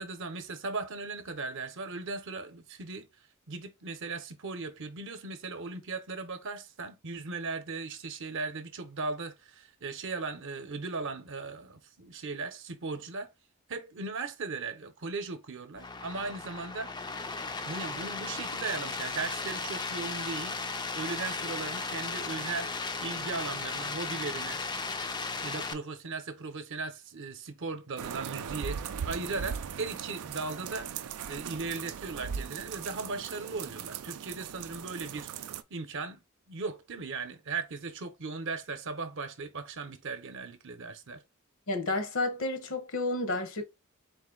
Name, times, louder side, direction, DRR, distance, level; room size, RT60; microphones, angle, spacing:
voice 1, 0.0-3.1 3.5-13.3 13.7-16.9 17.6-22.7 23.0-24.6 25.4-36.2 36.5-41.2, right 4 dB, 60° right, 0.8 m, -38 dB
sound 1, 15.8-25.7, left 4 dB, 20° left, 0.4 m, -36 dB
sound 2, 28.0-35.6, right 7 dB, 80° right, 0.4 m, -39 dB
voice 2, 41.7-43.6, left 2 dB, 65° left, 0.9 m, -31 dB
4.0 x 2.5 x 3.8 m
head